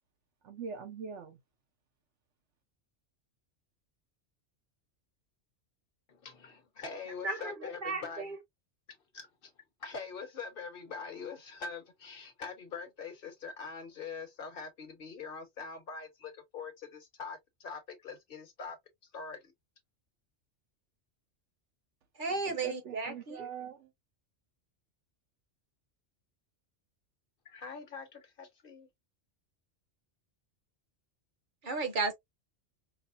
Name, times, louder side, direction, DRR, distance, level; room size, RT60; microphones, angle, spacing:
voice 1, 0.4-1.4 22.5-23.9, right 6 dB, 80° right, 1.2 m, -43 dB
voice 2, 6.1-8.3 9.1-9.5 9.8-18.8 19.1-19.5 27.4-28.9, left 5 dB, 50° left, 1.1 m, -43 dB
voice 3, 7.2-8.4 22.2-23.5 31.6-32.1, right 3 dB, 45° right, 1.0 m, -34 dB
4.8 x 2.1 x 2.5 m
omnidirectional pair, 1.2 m